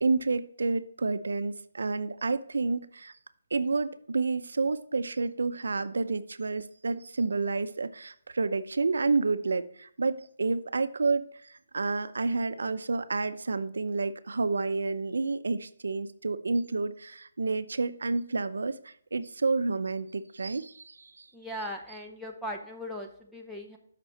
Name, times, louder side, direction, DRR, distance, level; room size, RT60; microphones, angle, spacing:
voice 1, 0.0-3.1 3.5-21.3, right 3 dB, 90° right, 12 dB, 0.6 m, -30 dB
voice 2, 21.3-23.8, equal, ahead, 1 dB, 0.7 m, -38 dB
7.3 x 5.9 x 4.2 m, 0.64 s
hypercardioid pair, 170°, 0 cm